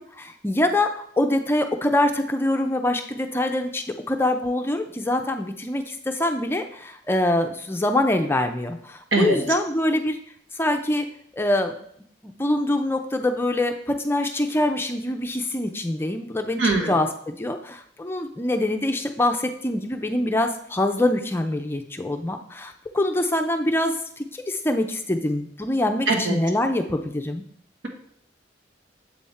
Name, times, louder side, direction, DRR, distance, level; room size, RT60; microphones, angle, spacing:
voice 1, 0.0-10.2 10.6-11.1 11.3-11.8 12.2-27.4, left 1 dB, 15° left, 5 dB, 0.4 m, -24 dB
voice 2, 16.6-16.9 26.1-26.3, right 2 dB, 80° right, 1 dB, 1.4 m, -21 dB
7.6 x 3.6 x 4.2 m, 0.65 s
head